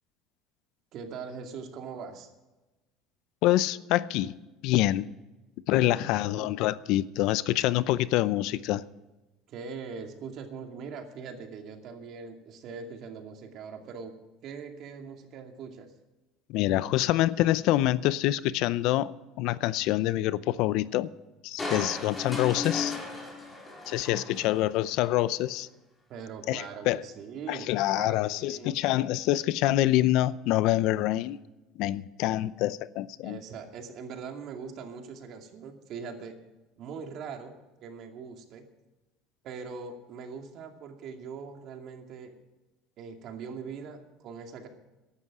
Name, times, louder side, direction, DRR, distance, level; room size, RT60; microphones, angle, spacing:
voice 1, 0.9-2.3 5.8-6.5 9.5-14.1 14.4-15.9 26.1-28.8 33.2-36.3 36.8-37.5 37.8-38.6 39.4-42.3 43.0-44.7, right 5 dB, 55° right, 2.4 m, -41 dB
voice 2, 3.4-4.3 4.6-5.1 5.7-8.8 16.5-19.1 19.4-21.1 21.4-23.0 23.9-25.7 26.5-27.0 27.5-31.4 31.8-33.4, left 15 dB, 70° left, 0.6 m, -26 dB
Crushing, 21.6-25.0 25.4-25.5, left 3 dB, 15° left, 4.4 m, -36 dB
15.5 x 11.5 x 4.9 m
supercardioid pair, 115°, 0 cm